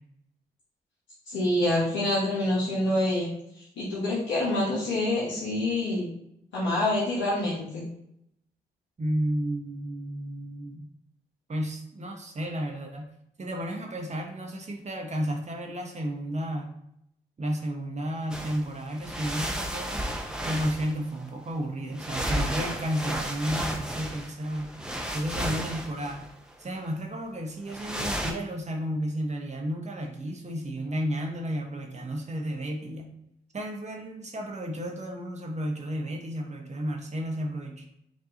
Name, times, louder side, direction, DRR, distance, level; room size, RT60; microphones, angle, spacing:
voice 1, 1.3-3.3 3.8-6.1 6.5-7.9, left 1 dB, 80° left, -7 dB, 1.1 m, -26 dB
voice 2, 9.0-10.8 11.5-13.1 13.4-16.7 17.4-20.0 20.4-24.7 25.1-26.2 26.6-33.1 33.5-37.8, equal, 35° right, 2 dB, 1.0 m, -32 dB
sound 1, 18.3-18.6 18.9-21.3 21.9-26.5 27.7-28.3, right 1 dB, 5° right, 0.7 m, -33 dB
5.0 x 2.6 x 2.6 m, 0.77 s
hypercardioid pair, 40°, 19 cm